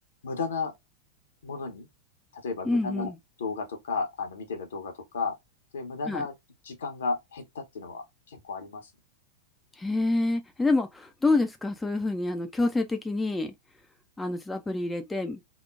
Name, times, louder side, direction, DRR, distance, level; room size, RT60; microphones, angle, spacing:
voice 1, 0.2-0.7 1.4-1.9 2.3-3.1 3.4-5.3 5.7-6.3 6.6-8.8, left 4 dB, 65° left, 0.8 m, -33 dB
voice 2, 2.6-3.2 6.1-6.2 9.8-13.5 14.2-15.4, left 2 dB, 10° left, 0.3 m, -27 dB
2.9 x 2.0 x 2.4 m
figure-of-eight pair, 90°, 0 cm